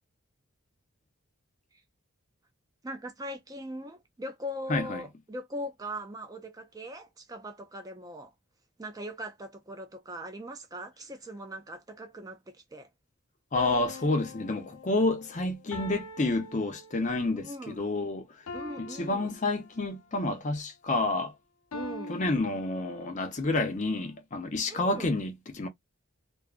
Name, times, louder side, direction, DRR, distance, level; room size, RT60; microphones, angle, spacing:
voice 1, 2.8-8.3 8.8-12.9 17.4-17.8 18.5-19.3 21.7-22.2 24.7-25.1, equal, 15° right, 0.3 m, -40 dB
voice 2, 4.7-5.0 13.5-18.2 18.8-21.3 22.1-25.7, left 2 dB, 35° left, 0.5 m, -29 dB
sound 1, 13.5-17.3 18.5-20.0 21.7-23.3, left 3 dB, 80° left, 0.6 m, -43 dB
2.5 x 2.3 x 2.4 m
head